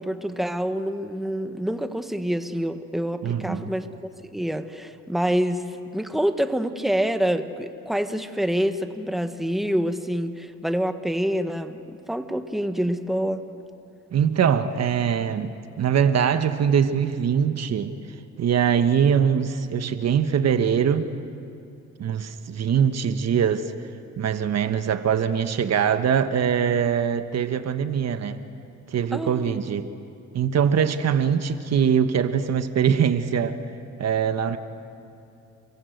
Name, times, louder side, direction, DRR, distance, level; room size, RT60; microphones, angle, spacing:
voice 1, 0.0-3.9 4.2-5.6 5.9-13.4 29.1-29.6, equal, ahead, 8 dB, 1.5 m, -26 dB
voice 2, 3.2-3.7 14.1-17.9 18.4-21.1 22.0-23.7 24.2-28.4 28.9-29.9 30.3-33.6 34.0-34.6, right 7 dB, 60° right, 9 dB, 1.3 m, -22 dB
29.0 x 23.0 x 8.0 m, 2.8 s
cardioid pair, 90°, 30 cm